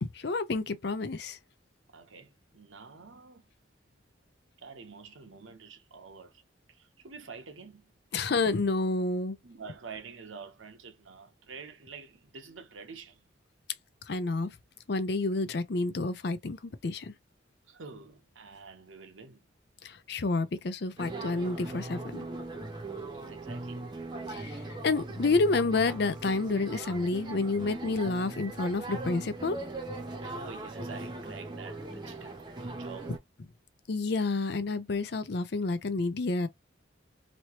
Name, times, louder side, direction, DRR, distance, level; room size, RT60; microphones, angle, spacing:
voice 1, 0.0-1.4 8.1-9.4 14.1-14.5 14.9-17.1 19.8-22.3 24.3-29.6 33.9-36.5, left 3 dB, 55° left, 0.5 m, -29 dB
voice 2, 1.9-3.5 4.6-6.4 6.7-7.9 9.4-13.3 17.7-19.4 23.1-23.9 30.2-33.1, right 5 dB, 80° right, 1.0 m, -48 dB
sound 1, 21.0-33.2, right 2 dB, 20° right, 0.8 m, -39 dB
3.0 x 2.8 x 2.9 m
head